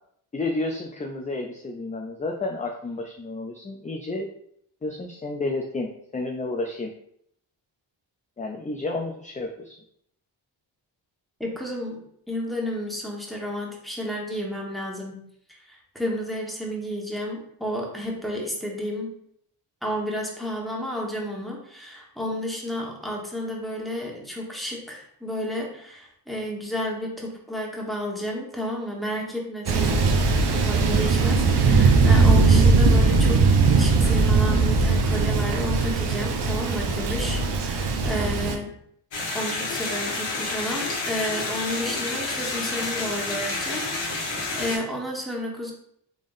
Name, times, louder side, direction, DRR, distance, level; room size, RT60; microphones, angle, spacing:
voice 1, 0.3-4.3 4.8-6.9 8.4-9.8, left 2 dB, 20° left, 2 dB, 0.4 m, -31 dB
voice 2, 11.4-12.0 12.3-15.2 15.6-19.1 19.8-30.1 30.5-33.4 33.7-38.7 39.3-45.7, equal, ahead, -2 dB, 1.2 m, -31 dB
Thunder, 29.7-38.6, right 4 dB, 60° right, 0.7 m, -19 dB
sound 1, 39.1-44.8, left 3 dB, 75° left, 1.3 m, -29 dB
3.7 x 3.4 x 2.6 m, 0.70 s
cardioid pair, 60°, 44 cm